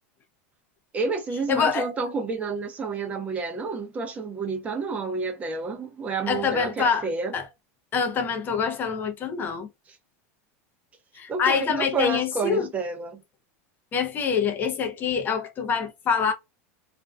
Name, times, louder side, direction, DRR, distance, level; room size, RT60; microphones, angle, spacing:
voice 1, 0.9-7.3 11.3-13.2, right 4 dB, 20° right, 0.7 m, -29 dB
voice 2, 1.5-1.9 6.3-7.1 7.3-7.5 7.9-9.7 11.2-12.7 13.9-16.3, left 6 dB, 25° left, 0.6 m, -25 dB
2.5 x 2.2 x 2.3 m
supercardioid pair, 140°, 7 cm